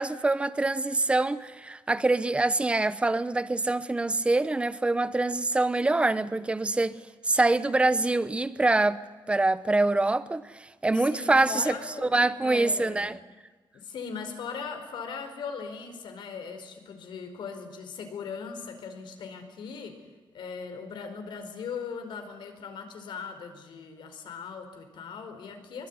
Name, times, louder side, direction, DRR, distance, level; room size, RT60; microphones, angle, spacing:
voice 1, 0.0-7.0 7.2-9.0 9.3-11.7 12.0-13.2, right 2 dB, 15° right, 0.9 m, -25 dB
voice 2, 10.9-12.1 12.4-13.1 13.7-20.0 20.3-25.9, left 5 dB, 80° left, 4.8 m, -39 dB
23.5 x 22.0 x 9.7 m
wide cardioid pair, 165°, 8 cm